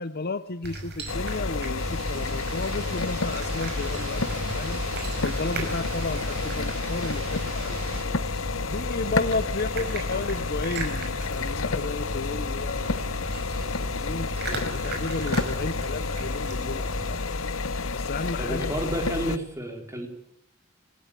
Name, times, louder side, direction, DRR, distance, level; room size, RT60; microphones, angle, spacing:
voice 1, 0.0-4.8 5.2-7.8 8.4-17.5 17.9-18.7, left 3 dB, 50° left, 12 dB, 0.8 m, -33 dB
sound 1, 0.6-17.2, right 2 dB, 55° right, 5.5 m, -37 dB
sound 2, 1.1-19.4, left 3 dB, 70° left, 1.0 m, -30 dB
sound 3, 1.8-8.0, right 3 dB, 80° right, 7.6 m, -40 dB
voice 2, 18.4-20.1, right 1 dB, 15° right, 3 dB, 4.4 m, -30 dB
27.0 x 15.0 x 9.2 m, 0.77 s
head